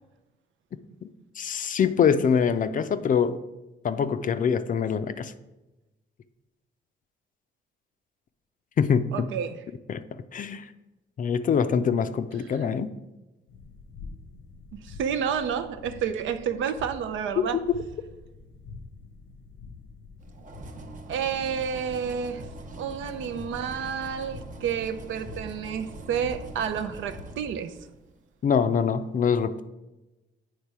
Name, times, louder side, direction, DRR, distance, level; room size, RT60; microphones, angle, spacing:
voice 1, 1.4-3.4 3.8-5.3 8.8-9.3 9.9-10.0 10.3-10.7 11.2-12.9 28.4-29.6, left 7 dB, 45° left, 0.4 m, -24 dB
voice 2, 9.1-9.6 12.5-12.7 14.7-17.6 21.1-22.5 22.8-27.7, right 7 dB, 75° right, 0.6 m, -30 dB
sound 1, 13.5-27.2, left 4 dB, 90° left, 0.9 m, -46 dB
sound 2, 20.2-28.2, right 3 dB, 40° right, 0.7 m, -44 dB
8.2 x 3.2 x 4.7 m
cardioid pair, 90°, 20 cm